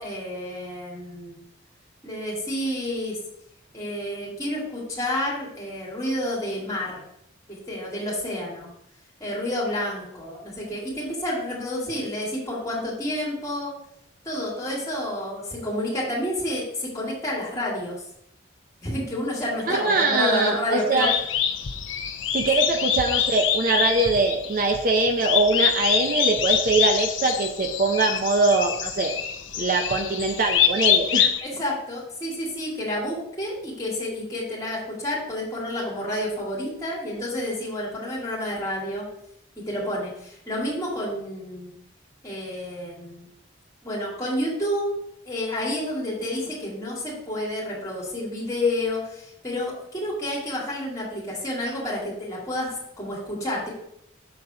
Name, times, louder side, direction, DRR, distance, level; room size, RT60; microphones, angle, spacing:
voice 1, 0.0-1.4 2.0-3.2 3.7-7.0 7.5-8.7 9.2-13.7 14.2-18.1 18.8-21.1 31.4-39.0 39.6-41.7 42.2-43.3 43.8-44.9 45.2-53.7, left 1 dB, 15° left, -5 dB, 2.3 m, -29 dB
voice 2, 19.7-21.1 22.3-29.1 29.6-31.3, right 3 dB, 45° right, 4 dB, 0.5 m, -22 dB
sound 1, 21.0-31.4, left 9 dB, 75° left, 0.6 m, -25 dB
6.8 x 4.0 x 4.6 m, 0.75 s
head